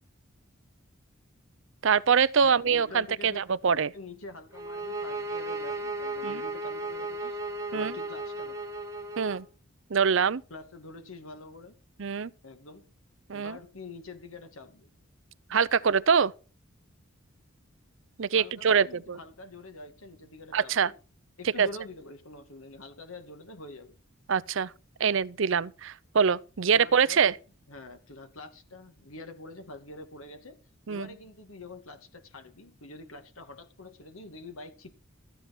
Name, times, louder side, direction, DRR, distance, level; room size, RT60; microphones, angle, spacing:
voice 1, 1.8-3.9 6.2-6.4 7.7-7.9 9.2-9.5 9.9-10.4 12.0-12.3 13.3-13.6 15.5-16.3 18.2-19.2 20.5-20.9 21.6-21.7 24.3-24.7 25.0-27.4 30.9-31.1, right 6 dB, 65° right, 0.6 m, -24 dB
voice 2, 2.4-3.4 3.9-7.4 7.7-8.7 10.5-11.8 12.4-12.9 13.3-14.9 18.3-20.9 21.4-24.0 26.7-27.2 27.7-30.6 30.9-34.9, left 2 dB, 85° left, 2.3 m, -45 dB
sound 1, 4.5-9.4, right 2 dB, 15° right, 1.7 m, -35 dB
14.0 x 9.1 x 4.4 m
head